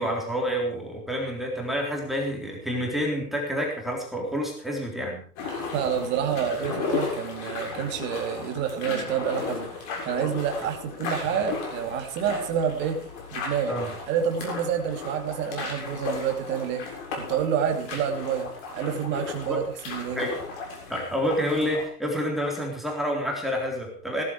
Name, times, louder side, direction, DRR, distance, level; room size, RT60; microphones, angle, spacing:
voice 1, 0.0-5.2 10.6-10.7 13.7-13.9 19.5-19.6 20.2-20.3 20.9-24.2, equal, ahead, -1 dB, 3.7 m, -28 dB
sound 1, 5.4-21.8, left 5 dB, 30° left, 7.1 m, -35 dB
voice 2, 5.4-13.0 13.3-13.8 14.1-20.3, right 8 dB, 25° right, 4 dB, 2.9 m, -28 dB
17.5 x 14.0 x 4.9 m, 0.43 s
hypercardioid pair, 145°, 47 cm